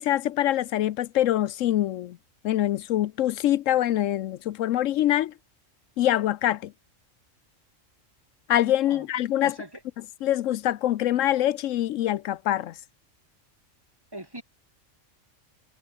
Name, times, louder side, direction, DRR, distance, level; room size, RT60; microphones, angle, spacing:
voice 1, 0.0-2.2 2.4-5.3 6.0-6.7 8.5-9.5 10.2-12.7, left 12 dB, 80° left, 1.0 m, -24 dB
voice 2, 9.4-9.8 14.1-14.4, right 1 dB, 20° right, 2.4 m, -40 dB
omnidirectional pair, 1.3 m